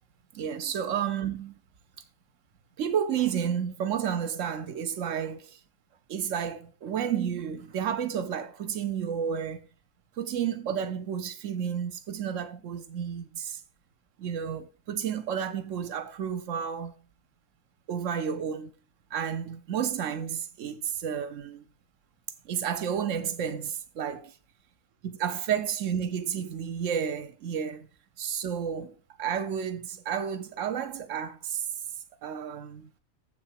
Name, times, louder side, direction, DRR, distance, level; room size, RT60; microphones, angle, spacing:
voice 1, 0.3-1.6 2.8-5.6 6.1-9.7 10.2-13.6 14.2-16.9 17.9-18.7 19.1-21.6 22.4-24.3 25.0-27.9 28.2-31.6 32.2-32.9, right 8 dB, 65° right, 1.2 m, -31 dB
7.7 x 6.7 x 4.8 m
omnidirectional pair, 1.5 m